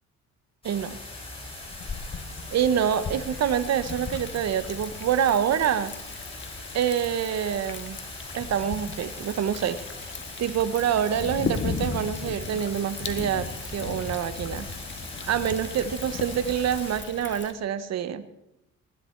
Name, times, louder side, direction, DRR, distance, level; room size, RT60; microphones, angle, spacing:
sound 1, 0.6-17.0, left 2 dB, 20° left, 5.1 m, -41 dB
voice 1, 0.6-1.0 2.5-5.9 6.7-8.0 8.3-10.1 10.4-14.7 15.2-18.3, right 9 dB, 60° right, 14 dB, 0.9 m, -26 dB
Thunder, 1.7-17.5, left 5 dB, 40° left, 1.4 m, -37 dB
18.5 x 10.5 x 4.5 m, 0.88 s
cardioid pair, 90°, 30 cm